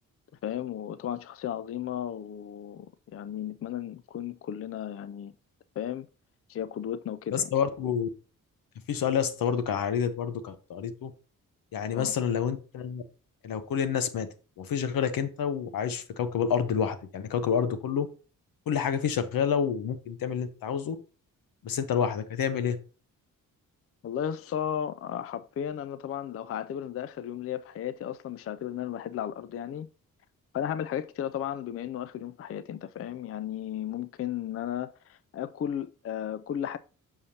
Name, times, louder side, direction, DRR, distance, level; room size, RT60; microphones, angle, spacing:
voice 1, 0.4-5.3 5.8-6.1 6.5-7.5 11.9-12.2 24.0-29.9 30.5-36.8, left 10 dB, 45° left, 0.4 m, -34 dB
voice 2, 7.3-8.1 8.9-11.1 11.7-13.0 13.4-14.3 14.6-18.1 18.7-21.0 21.6-22.8, left 7 dB, 80° left, 0.9 m, -28 dB
6.4 x 5.6 x 2.8 m
cardioid pair, 75°, 34 cm